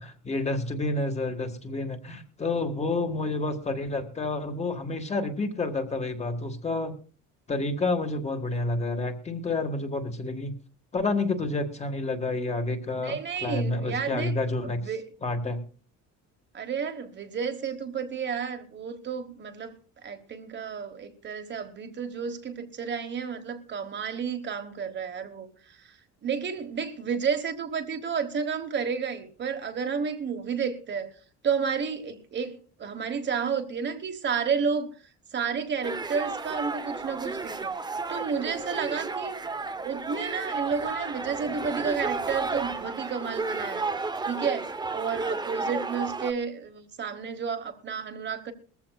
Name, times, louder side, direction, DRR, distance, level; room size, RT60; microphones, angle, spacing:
voice 1, 0.0-6.9 7.5-10.5 10.9-14.8 15.2-15.6, left 2 dB, 20° left, 5 dB, 1.6 m, -29 dB
voice 2, 13.0-14.3 14.6-15.0 16.5-19.7 20.0-25.9 26.2-31.1 31.4-34.9 35.3-37.7 38.1-39.4 39.8-43.9 44.3-48.5, right 6 dB, 35° right, 6 dB, 1.3 m, -31 dB
sound 1, 35.8-46.3, right 3 dB, 15° right, 0.8 m, -32 dB
21.0 x 14.5 x 2.3 m, 0.39 s
cardioid pair, 165°, 32 cm